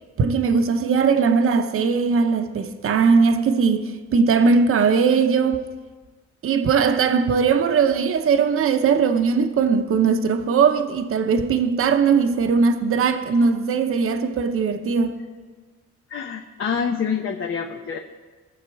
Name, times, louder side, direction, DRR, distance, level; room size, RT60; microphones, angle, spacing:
voice 1, 0.2-5.6 6.4-15.2, right 5 dB, 50° right, 0.8 m, -19 dB
voice 2, 16.1-18.0, left 6 dB, 45° left, 0.8 m, -26 dB
19.0 x 7.3 x 4.7 m
cardioid pair, 145°, 29 cm